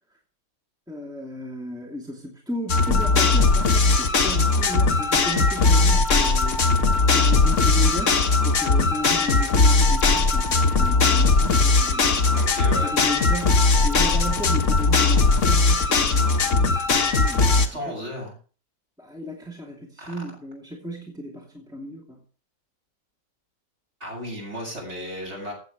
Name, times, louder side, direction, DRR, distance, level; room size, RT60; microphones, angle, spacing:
voice 1, 0.9-6.7 7.1-12.4 12.9-18.0 19.0-22.2, equal, ahead, 0 dB, 2.8 m, -35 dB
sound 1, 2.7-17.7, left 3 dB, 45° left, 1.8 m, -19 dB
voice 2, 12.4-13.0 17.6-18.4 20.0-20.2 24.0-25.5, equal, 40° right, -1 dB, 7.7 m, -34 dB
16.0 x 8.3 x 6.6 m, 0.39 s
omnidirectional pair, 1.9 m